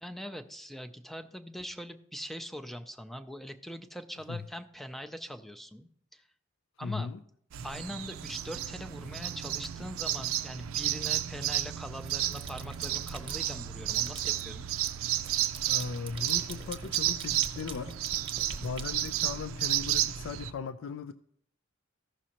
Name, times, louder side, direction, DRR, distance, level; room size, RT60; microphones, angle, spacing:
voice 1, 0.0-6.2 6.8-7.1 7.6-14.7, equal, ahead, 8 dB, 0.4 m, -42 dB
voice 2, 6.8-7.2 15.7-18.0 18.6-21.1, left 5 dB, 70° left, 11 dB, 0.4 m, -37 dB
sound 1, 7.5-20.5, right 12 dB, 85° right, 0.4 m, -32 dB
sound 2, 11.1-11.6 12.0-13.5 13.9-19.7, right 4 dB, 25° right, 1.0 m, -44 dB
14.5 x 6.1 x 2.9 m, 0.67 s
head